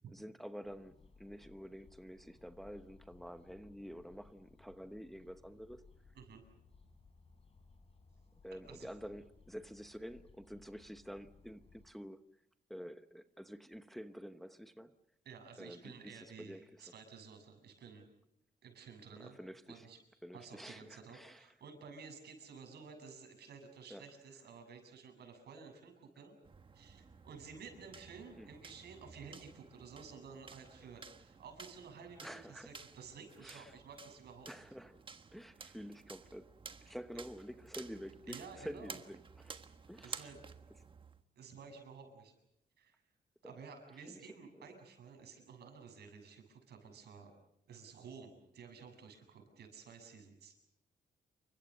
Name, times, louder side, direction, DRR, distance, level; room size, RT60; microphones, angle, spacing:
voice 1, 0.1-5.8 8.4-12.2 12.7-14.9 15.6-16.9 19.2-19.9 20.2-21.5 23.9-24.1 28.3-28.5 32.2-32.7 33.4-33.8 34.5-35.0 35.3-36.5 36.8-39.6 39.9-40.3 43.4-43.6 44.1-44.2 44.5-44.7, equal, ahead, 0.9 m, -49 dB
sound 1, 0.6-11.9, left 4 dB, 35° left, 4.5 m, -63 dB
voice 2, 15.2-18.1 18.6-19.4 19.7-20.0 20.3-26.3 26.7-34.7 38.3-39.0 40.0-40.4 41.4-42.3 42.8-43.0 43.4-47.3 47.7-50.6, right 5 dB, 80° right, 7.4 m, -53 dB
sound 2, 26.4-41.2, right 5 dB, 30° right, 1.4 m, -53 dB
29.0 x 24.5 x 6.6 m
wide cardioid pair, 145°, 17 cm